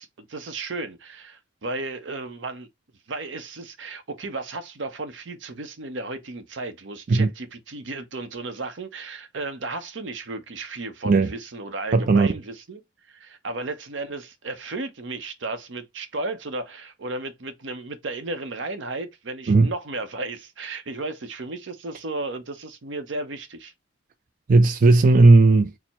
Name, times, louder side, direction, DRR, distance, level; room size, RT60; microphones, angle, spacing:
voice 1, 0.0-2.7 3.1-12.8 13.1-23.7, right 2 dB, 80° right, 0.7 m, -34 dB
voice 2, 11.9-12.3 19.5-19.7 24.5-25.7, right 3 dB, 45° right, 0.4 m, -15 dB
4.4 x 2.1 x 4.1 m
head